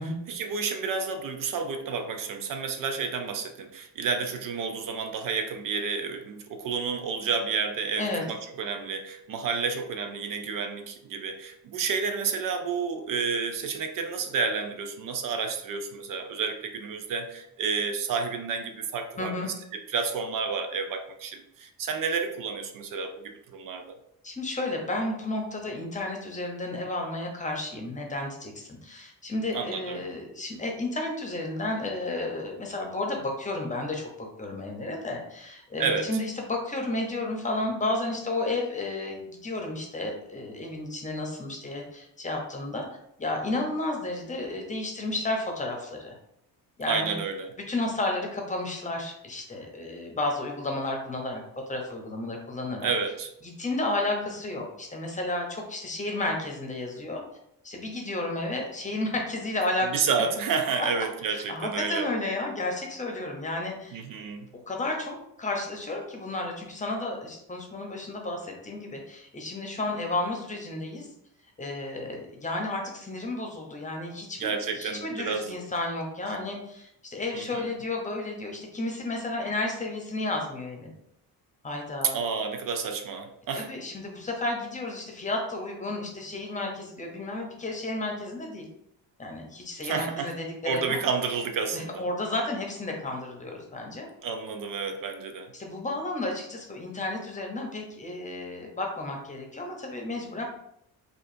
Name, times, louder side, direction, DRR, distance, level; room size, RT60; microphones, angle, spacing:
voice 1, 0.0-24.0 29.5-30.0 35.8-36.1 46.9-47.5 52.8-53.3 59.9-62.1 63.9-64.5 74.4-75.6 77.3-77.6 82.1-83.7 89.8-90.3 90.6-92.1 94.2-95.5, right 5 dB, 60° right, 6 dB, 0.5 m, -30 dB
voice 2, 19.2-19.5 24.2-42.8 43.2-46.1 46.8-47.2 47.7-51.4 51.7-52.9 53.4-57.2 57.6-59.9 61.3-64.0 64.5-71.1 71.6-80.9 81.6-82.2 83.6-88.7 89.2-91.0 91.7-94.1 95.5-100.4, left 2 dB, 20° left, 1 dB, 0.8 m, -32 dB
4.7 x 2.5 x 2.6 m, 0.76 s
cardioid pair, 120°, 37 cm